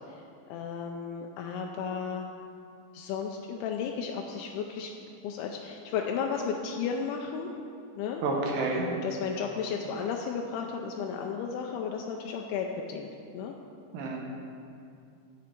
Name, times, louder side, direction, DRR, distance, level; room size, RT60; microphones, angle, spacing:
voice 1, 0.5-2.3 2.9-4.9 5.2-7.5 8.0-8.2 8.9-13.5, left 6 dB, 80° left, 1 dB, 2.3 m, -34 dB
voice 2, 8.2-8.9 13.9-14.2, right 3 dB, 70° right, 0 dB, 2.3 m, -29 dB
15.5 x 6.2 x 4.5 m, 2.5 s
omnidirectional pair, 5.0 m